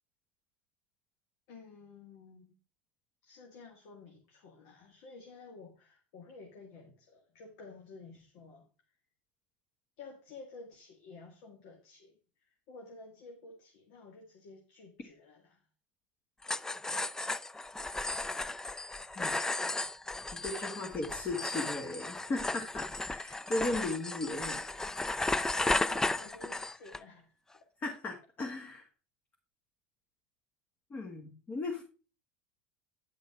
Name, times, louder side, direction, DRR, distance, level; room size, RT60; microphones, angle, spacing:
voice 1, 1.5-2.5 3.2-8.7 10.0-15.7 23.3-23.5 25.8-27.7, left 3 dB, 65° left, 2 dB, 2.0 m, -52 dB
sound 1, 16.4-27.0, left 2 dB, 10° left, 0.4 m, -35 dB
voice 2, 20.3-24.7 27.8-28.9 30.9-31.8, left 2 dB, 30° left, 2 dB, 1.8 m, -37 dB
10.5 x 5.5 x 4.8 m, 0.36 s
supercardioid pair, 105°, 6 cm